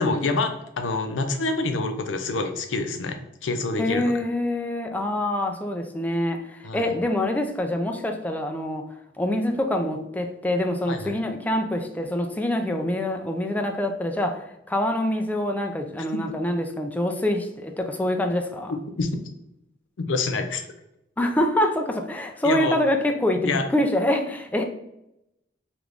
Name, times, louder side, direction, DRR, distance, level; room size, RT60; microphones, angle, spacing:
voice 1, 0.0-4.1 6.6-6.9 10.9-11.1 19.0-19.1 20.0-20.7 22.4-22.7 23.4-23.7, left 3 dB, 80° left, 6 dB, 0.5 m, -27 dB
voice 2, 3.8-8.8 9.2-18.8 21.2-24.6, left 1 dB, 10° left, 4 dB, 0.3 m, -25 dB
3.4 x 3.0 x 2.4 m, 0.84 s
head